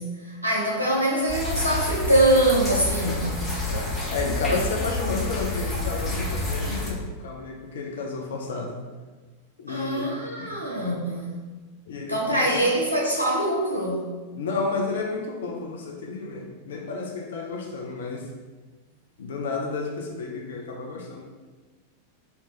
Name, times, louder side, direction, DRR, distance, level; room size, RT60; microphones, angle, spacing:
voice 1, 0.0-3.4 9.7-11.4 12.1-14.1, right 1 dB, 85° right, -3 dB, 1.0 m, -24 dB
sound 1, 1.3-6.9, left 1 dB, 10° left, 1.2 m, -29 dB
voice 2, 3.6-8.8 9.6-10.1 10.4-10.6 11.9-12.5 14.3-18.3 19.2-21.2, left 4 dB, 60° left, 1 dB, 0.5 m, -31 dB
3.2 x 2.9 x 4.4 m, 1.3 s
figure-of-eight pair, 90°, 0 cm